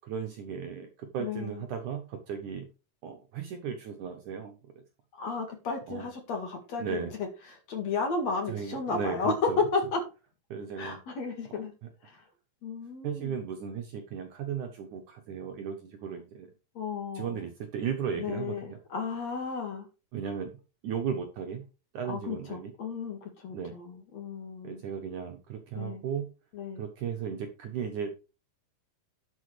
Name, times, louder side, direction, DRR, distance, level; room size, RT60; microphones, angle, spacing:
voice 1, 0.0-2.7 3.0-4.8 5.9-6.1 6.8-7.1 8.5-9.6 10.5-11.0 13.0-16.5 17.1-18.6 20.1-20.5 20.8-21.6 21.9-22.7 23.5-23.8 24.6-26.3 26.8-28.1, right 7 dB, 65° right, 5 dB, 2.2 m, -35 dB
voice 2, 1.2-1.6 5.2-10.0 10.8-11.7 12.0-12.3 12.6-13.4 16.7-17.4 18.2-19.9 22.1-24.8 25.8-26.0 26.5-26.8, left 4 dB, 50° left, 4 dB, 2.7 m, -33 dB
12.0 x 7.5 x 3.3 m, 0.31 s
omnidirectional pair, 4.7 m